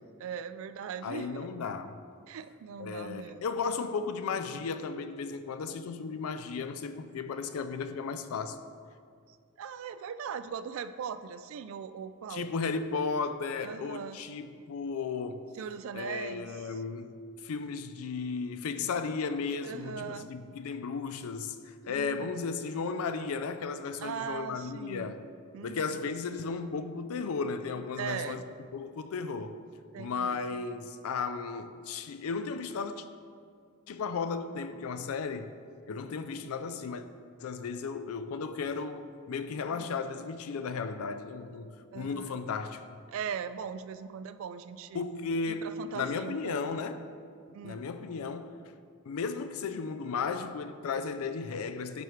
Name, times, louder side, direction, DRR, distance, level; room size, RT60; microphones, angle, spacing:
voice 1, 0.2-1.5 2.3-3.4 9.6-12.6 13.6-14.2 15.6-16.5 19.6-20.3 21.9-22.3 24.0-25.1 25.5-26.0 28.0-28.4 29.9-30.6 39.7-39.9 41.9-42.3 43.1-45.0 45.5-46.8 47.5-47.8, right 7 dB, 65° right, 0.3 m, -39 dB
voice 2, 1.0-2.0 2.8-8.6 12.3-15.5 15.9-17.1 17.4-25.2 25.6-28.4 28.7-29.6 30.0-33.0 33.9-35.5 35.9-37.0 37.4-41.7 41.9-42.9 44.9-47.0 47.6-48.6 49.1-52.0, left 5 dB, 80° left, 0.4 m, -35 dB
10.5 x 4.5 x 3.2 m
head